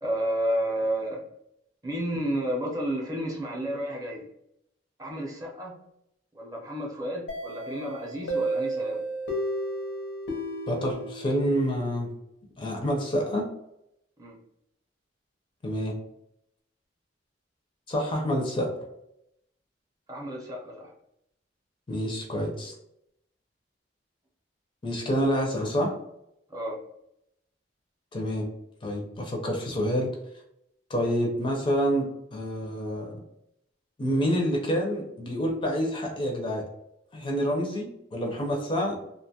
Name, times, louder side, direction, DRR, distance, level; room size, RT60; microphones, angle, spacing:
voice 1, 0.0-1.2 1.8-4.3 5.0-5.7 6.3-9.0 14.2-14.4 20.1-20.9 26.5-26.8, right 1 dB, 20° right, -2 dB, 0.5 m, -31 dB
sound 1, 7.3-12.0, right 1 dB, 85° left, 0.7 m, -33 dB
voice 2, 10.7-12.1 12.6-13.5 15.6-16.0 17.9-18.7 21.9-22.7 24.8-25.9 28.1-28.5 28.8-30.1 30.9-33.1 34.0-36.6 37.1-39.0, equal, 25° left, 0 dB, 0.4 m, -27 dB
2.4 x 2.2 x 2.7 m, 0.80 s
head